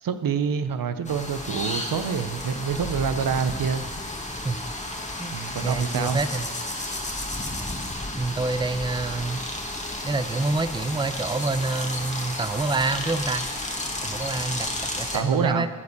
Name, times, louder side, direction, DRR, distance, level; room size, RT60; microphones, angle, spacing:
voice 1, 0.0-3.9 5.3-6.2 15.1-15.7, right 6 dB, 85° right, 10 dB, 0.6 m, -26 dB
sound 1, 1.0-15.2, left 1 dB, 20° left, 1.4 m, -32 dB
voice 2, 5.2-6.5 8.2-9.4 10.0-13.5 14.0-15.7, right 3 dB, 15° right, 12 dB, 0.5 m, -27 dB
9.5 x 5.3 x 8.0 m, 1.5 s
wide cardioid pair, 60°, 33 cm